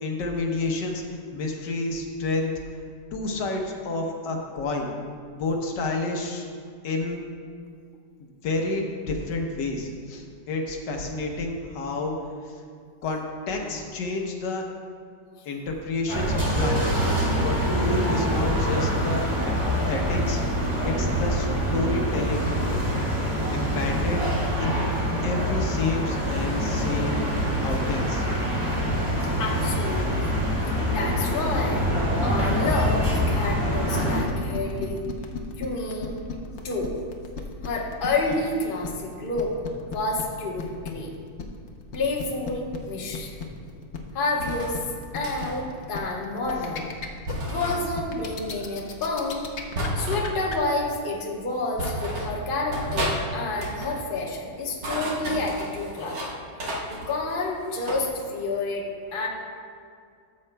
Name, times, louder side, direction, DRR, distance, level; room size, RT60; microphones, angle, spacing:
voice 1, 0.0-2.5 3.1-4.9 5.3-6.5 6.8-7.2 8.2-12.1 12.4-12.5 13.0-14.6 15.4-16.9 17.4-19.5 19.9-20.4 20.8-22.5 23.5-24.3 24.6-24.9 25.2-27.2 27.6-28.2, left 2 dB, 75° left, 1 dB, 1.5 m, -29 dB
sound 1, 16.1-34.2, equal, 15° right, 1.8 m, -25 dB
voice 2, 29.4-30.3 30.9-31.9 32.2-35.0 35.6-36.2 36.6-36.9 37.6-39.5 39.9-41.1 41.9-43.3 44.1-44.8 45.1-46.9 47.5-49.5 49.9-56.3 56.9-58.8 59.1-59.3, left 2 dB, 35° left, -2 dB, 1.0 m, -29 dB
sound 2, 34.0-50.6, left 6 dB, 55° left, 0.8 m, -35 dB
sound 3, 44.4-44.7 45.2-45.6 47.3-47.8 49.7-50.3 51.2-51.3 51.8-52.3 52.7-53.2 53.5-53.9 54.6-56.3 56.6-58.0, right 1 dB, 75° right, 2.1 m, -31 dB
13.5 x 7.3 x 2.2 m, 2.2 s
omnidirectional pair, 1.9 m